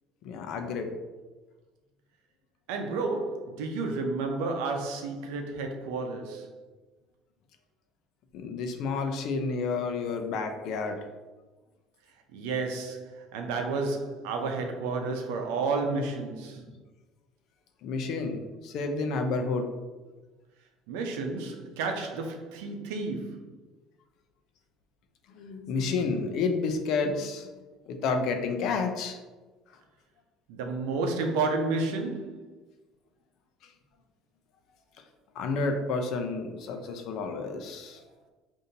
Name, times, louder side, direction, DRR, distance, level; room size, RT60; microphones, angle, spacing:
voice 1, 0.2-0.9 8.3-11.0 17.8-18.4 18.6-19.7 25.4-27.5 27.9-29.2 35.4-38.0, left 4 dB, 60° left, 0.5 m, -30 dB
voice 2, 2.7-6.5 12.3-16.7 20.9-23.4 30.5-32.4, right 3 dB, 90° right, 0.6 m, -31 dB
5.1 x 2.6 x 2.8 m
cardioid pair, 120°, 0 cm